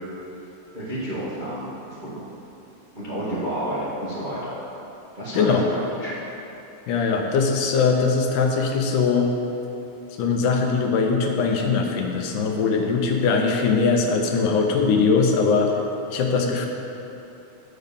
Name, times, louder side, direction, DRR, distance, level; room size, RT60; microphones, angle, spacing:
voice 1, 0.7-2.3 2.9-4.6 5.1-5.6 6.0-6.2, right 1 dB, 40° right, -9 dB, 0.7 m, -30 dB
voice 2, 5.3-5.7 6.9-9.3 10.2-15.8 16.1-16.7, left 5 dB, 85° left, 2 dB, 2.4 m, -21 dB
8.5 x 5.3 x 6.8 m, 2.9 s
omnidirectional pair, 3.5 m